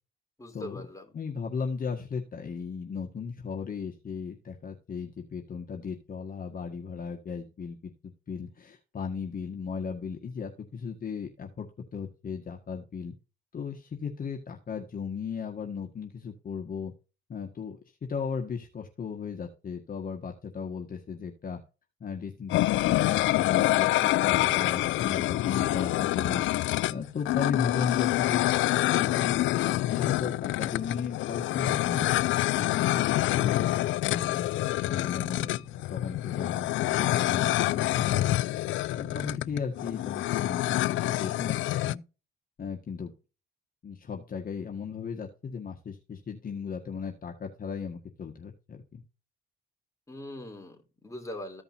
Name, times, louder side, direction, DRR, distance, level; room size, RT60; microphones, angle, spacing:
voice 1, 0.4-1.1 50.1-51.6, left 1 dB, 15° left, 3 dB, 3.3 m, -41 dB
voice 2, 1.1-7.9 8.3-13.1 13.5-16.9 17.3-21.6 22.0-26.4 26.9-28.5 28.8-32.1 32.6-38.3 38.9-42.0 42.6-43.1 43.8-49.0, left 6 dB, 45° left, 1 dB, 1.7 m, -36 dB
sound 1, 22.5-41.9, left 16 dB, 75° left, 0.4 m, -26 dB
15.0 x 5.3 x 2.7 m, 0.32 s
cardioid pair, 90°, 20 cm